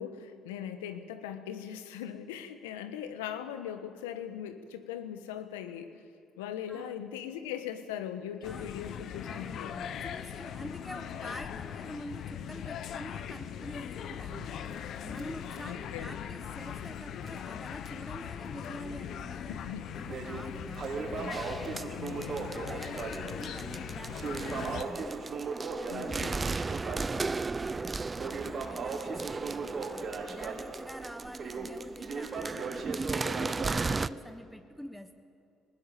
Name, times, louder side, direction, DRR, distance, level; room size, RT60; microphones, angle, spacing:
voice 1, 0.0-6.0 6.4-9.7 15.6-16.1 19.5-19.9 21.7-22.5 25.9-26.3, left 9 dB, 85° left, 9 dB, 1.3 m, -40 dB
sound 1, 8.4-24.8, left 8 dB, 65° left, 1.1 m, -40 dB
voice 2, 8.4-8.7 9.2-21.5 22.3-25.2 25.8-35.1, equal, ahead, 8 dB, 1.4 m, -47 dB
Crackle, 14.3-17.0 17.3-17.4 17.9-18.0 18.6-19.2 19.6-33.9, right 4 dB, 55° right, 4.6 m, -38 dB
sound 2, 21.3-34.1, right 4 dB, 30° right, 0.5 m, -36 dB
19.5 x 19.0 x 8.5 m, 2.5 s
hypercardioid pair, 55°, 0 cm